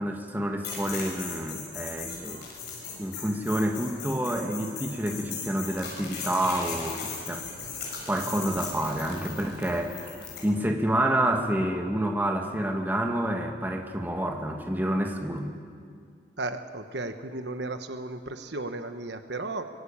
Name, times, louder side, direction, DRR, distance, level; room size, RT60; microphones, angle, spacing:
voice 1, 0.0-2.4 3.0-7.4 8.1-10.1 10.4-15.5, right 1 dB, 10° right, 2 dB, 2.0 m, -28 dB
sound 1, 0.6-10.5, left 5 dB, 55° left, 7.7 m, -38 dB
voice 2, 16.4-19.7, right 2 dB, 65° right, 8 dB, 1.3 m, -34 dB
24.5 x 23.0 x 8.8 m, 2.2 s
head